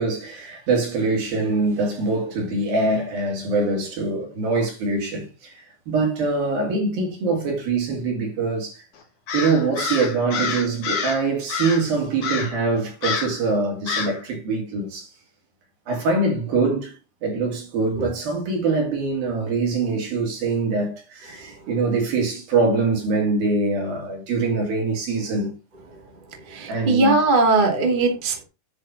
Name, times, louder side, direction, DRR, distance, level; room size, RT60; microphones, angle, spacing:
voice 1, 0.0-5.5 5.9-8.8 9.3-15.1 15.9-16.9 17.2-25.5 26.7-27.2, right 3 dB, 55° right, 4.6 m, -23 dB
Crow, 9.3-11.2 11.5-11.9 12.2-12.6 13.0-13.4 13.9-14.2, left 6 dB, 50° left, 1.9 m, -27 dB
voice 2, 26.5-28.4, right 3 dB, 40° right, 0.7 m, -19 dB
10.0 x 4.3 x 5.7 m
omnidirectional pair, 5.2 m